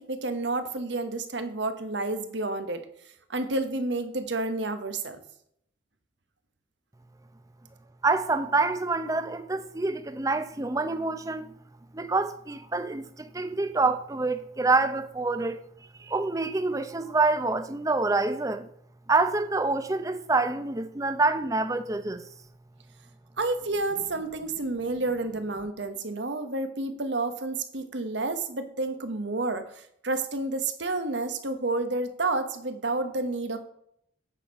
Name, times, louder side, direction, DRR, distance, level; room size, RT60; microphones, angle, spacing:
voice 1, 0.0-2.8 3.3-5.2 23.4-33.6, right 2 dB, 75° right, 1.2 m, -30 dB
voice 2, 8.0-11.5 11.9-15.7 16.0-18.7 19.1-22.2, right 3 dB, 20° right, 0.6 m, -26 dB
9.0 x 6.4 x 5.3 m
head